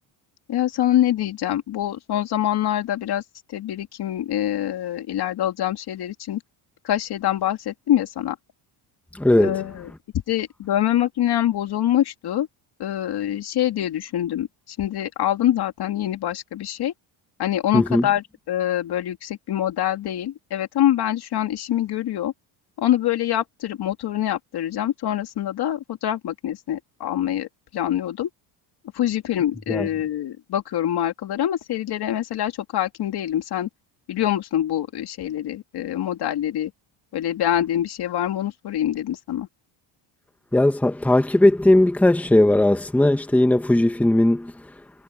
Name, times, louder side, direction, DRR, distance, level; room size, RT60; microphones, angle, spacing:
voice 1, 0.5-3.2 3.5-6.4 6.8-8.4 9.4-9.9 10.3-12.5 12.8-16.9 17.4-22.3 22.8-28.3 28.9-33.7 34.1-36.7 37.1-39.5, left 12 dB, 55° left, 2.5 m, -25 dB
voice 2, 9.2-9.5 17.7-18.1 29.7-29.9 40.5-44.5, left 1 dB, 5° left, 1.3 m, -18 dB
cardioid pair, 140°, 47 cm